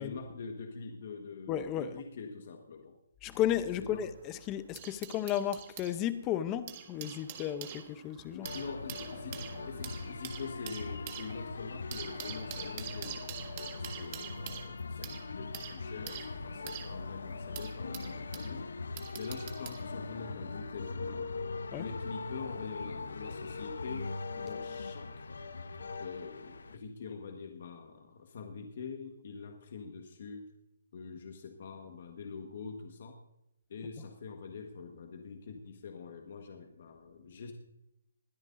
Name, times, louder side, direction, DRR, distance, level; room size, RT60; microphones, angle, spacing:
voice 1, 0.0-3.0 3.7-4.1 8.2-13.3 13.7-18.7 19.1-21.3 21.8-25.3 26.0-30.5 30.9-33.2 33.7-37.5, left 5 dB, 50° left, 1.4 m, -44 dB
voice 2, 1.5-1.9 3.2-8.5 21.7-21.8, left 11 dB, 15° left, 0.7 m, -33 dB
sound 1, 3.8-5.9 6.5-18.5 19.0-19.8 20.7-20.9, right 10 dB, 30° right, 1.4 m, -46 dB
sound 2, 8.4-26.8, left 3 dB, 80° left, 0.8 m, -41 dB
21.0 x 13.0 x 2.6 m
hypercardioid pair, 165°, 0 cm